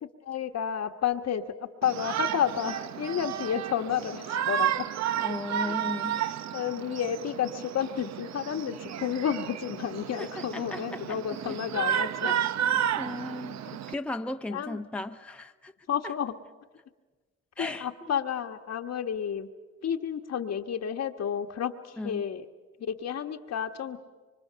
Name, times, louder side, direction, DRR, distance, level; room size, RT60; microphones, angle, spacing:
voice 1, 0.0-4.9 5.6-5.8 6.5-12.1 13.7-13.8 14.5-14.8 15.9-16.3 17.6-19.5 19.8-22.5 22.8-24.0, left 8 dB, 60° left, 6 dB, 1.4 m, -31 dB
Shout, 1.8-13.9, right 10 dB, 60° right, 0.8 m, -32 dB
voice 2, 5.2-6.2 10.2-11.2 11.5-11.6 11.9-12.4 13.0-13.6 13.9-15.7 16.0-16.1 17.6-18.2 22.0-22.2, left 2 dB, 5° left, 6 dB, 0.9 m, -36 dB
26.0 x 24.5 x 6.9 m, 1.3 s
cardioid pair, 90°, 30 cm